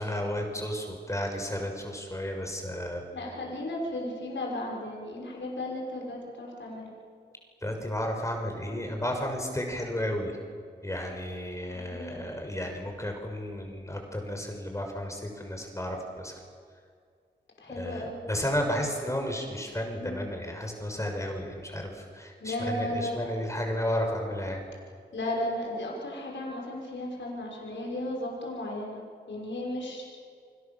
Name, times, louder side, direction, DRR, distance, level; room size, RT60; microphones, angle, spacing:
voice 1, 0.0-3.0 7.6-10.4 10.8-16.4 17.7-24.6, equal, 15° left, 2 dB, 6.3 m, -33 dB
voice 2, 3.1-6.9 11.6-12.3 17.6-18.2 20.0-20.2 22.4-23.3 25.1-29.0 29.3-30.1, left 1 dB, 85° left, -2 dB, 6.0 m, -35 dB
29.0 x 25.5 x 7.3 m, 2.2 s
cardioid pair, 55°, 19 cm